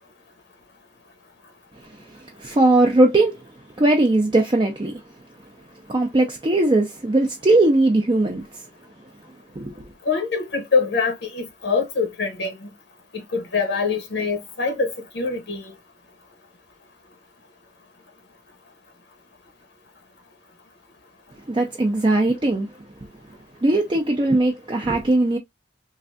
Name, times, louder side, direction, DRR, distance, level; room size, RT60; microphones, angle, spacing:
voice 1, 2.1-3.4 3.8-5.0 5.9-8.6 9.6-9.7 21.5-22.7 23.6-25.4, right 2 dB, 25° right, 0.5 m, -19 dB
voice 2, 10.1-12.7 13.3-15.6, left 4 dB, 65° left, 0.8 m, -24 dB
3.2 x 2.5 x 2.4 m
head